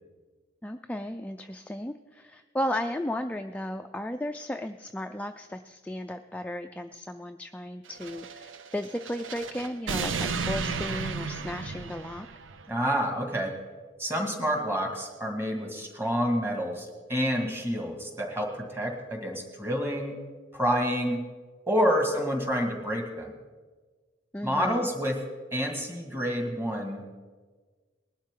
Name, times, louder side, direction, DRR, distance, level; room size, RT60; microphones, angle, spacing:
voice 1, 0.6-12.3 24.3-24.9, left 1 dB, 5° left, 6 dB, 0.3 m, -35 dB
sound 1, 7.9-12.7, right 4 dB, 85° right, 0.7 m, -34 dB
voice 2, 12.7-13.6 14.0-20.2 20.5-21.2 21.7-23.3 24.4-25.2 25.5-27.0, equal, 15° right, 2 dB, 2.0 m, -28 dB
19.5 x 11.5 x 3.8 m, 1.4 s
head